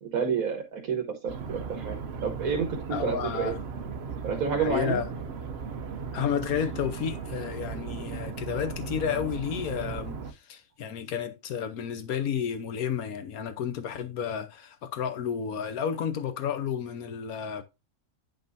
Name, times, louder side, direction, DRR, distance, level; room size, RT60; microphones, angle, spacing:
voice 1, 0.0-3.5 4.2-5.0, right 6 dB, 75° right, 1.7 m, -30 dB
sound 1, 1.3-10.3, right 5 dB, 55° right, 0.9 m, -37 dB
voice 2, 2.9-3.6 4.6-5.1 6.1-17.6, left 8 dB, 90° left, 1.3 m, -31 dB
9.4 x 5.3 x 2.7 m
omnidirectional pair, 1.5 m